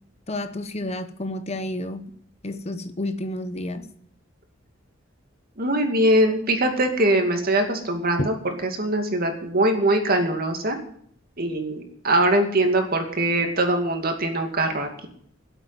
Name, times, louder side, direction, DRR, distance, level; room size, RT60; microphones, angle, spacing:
voice 1, 0.3-2.1 2.4-3.9 8.2-8.3, left 1 dB, 35° left, 10 dB, 0.9 m, -30 dB
voice 2, 5.6-10.8 11.4-15.1, right 1 dB, 50° right, 4 dB, 2.4 m, -22 dB
13.5 x 8.2 x 9.0 m, 0.64 s
head